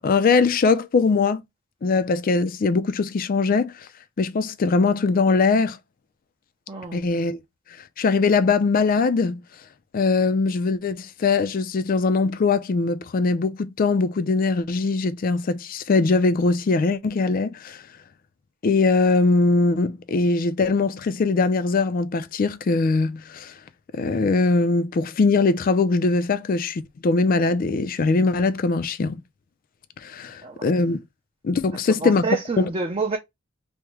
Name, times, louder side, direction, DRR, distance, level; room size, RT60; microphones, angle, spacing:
voice 1, 0.0-1.4 1.8-3.7 4.2-5.8 6.9-7.4 8.0-9.4 9.9-17.8 18.6-23.5 23.9-29.2 30.0-31.0 31.4-32.2 32.6-32.7, left 4 dB, 45° left, 0.4 m, -21 dB
voice 2, 6.7-7.1 30.4-30.7 31.9-33.2, right 4 dB, 30° right, 0.5 m, -28 dB
3.5 x 2.1 x 2.9 m
head